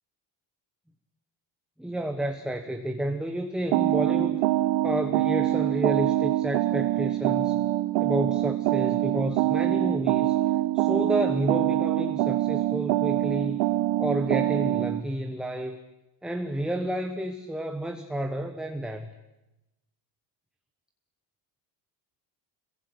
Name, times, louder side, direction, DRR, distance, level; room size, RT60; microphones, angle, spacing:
voice 1, 1.8-4.4 4.8-7.6 8.0-10.4 10.7-13.6 14.0-15.8 16.2-19.1, right 1 dB, ahead, 5 dB, 1.2 m, -30 dB
sound 1, 3.7-15.0, right 15 dB, 70° right, 1.0 m, -25 dB
26.5 x 22.0 x 9.9 m, 0.99 s
cardioid pair, 155°, 45 cm